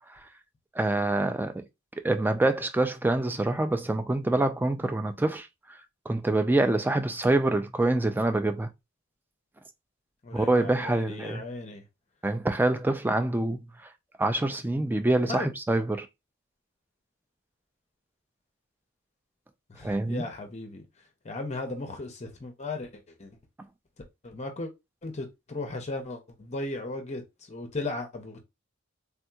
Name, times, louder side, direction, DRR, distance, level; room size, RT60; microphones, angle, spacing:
voice 1, 0.8-1.6 2.0-5.5 6.1-8.7 10.3-11.4 12.2-13.6 14.2-16.1 19.8-20.3, right 2 dB, 10° right, 0.3 m, -26 dB
voice 2, 10.2-11.8 15.3-15.5 19.7-20.8 21.2-22.9 23.2-23.3 24.2-24.7 25.0-28.4, left 2 dB, 35° left, 0.6 m, -36 dB
3.5 x 2.8 x 2.3 m
head